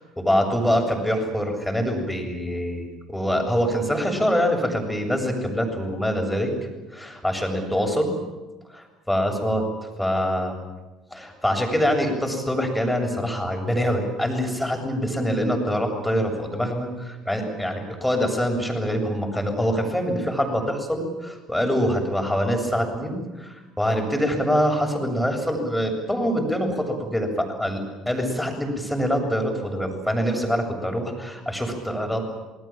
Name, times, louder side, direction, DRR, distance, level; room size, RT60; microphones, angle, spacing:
voice 1, 0.2-6.5 6.9-8.1 8.7-9.6 10.0-10.5 11.1-32.2, equal, 5° left, 3 dB, 7.7 m, -24 dB
28.0 x 21.0 x 7.6 m, 1.1 s
hypercardioid pair, 60°, 0 cm